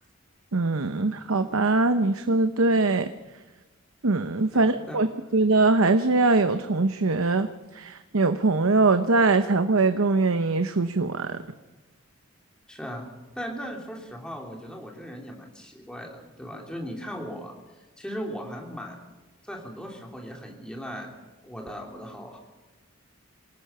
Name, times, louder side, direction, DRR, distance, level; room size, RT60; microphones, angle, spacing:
voice 1, 0.5-3.1 4.0-5.1 5.3-7.5 7.7-11.4, right 3 dB, 75° right, 9 dB, 0.8 m, -22 dB
voice 2, 4.5-5.0 12.7-13.1 13.3-17.5 18.0-19.0 19.4-21.1 21.4-22.4, equal, 5° left, 0 dB, 3.0 m, -38 dB
26.5 x 18.5 x 5.7 m, 1.2 s
head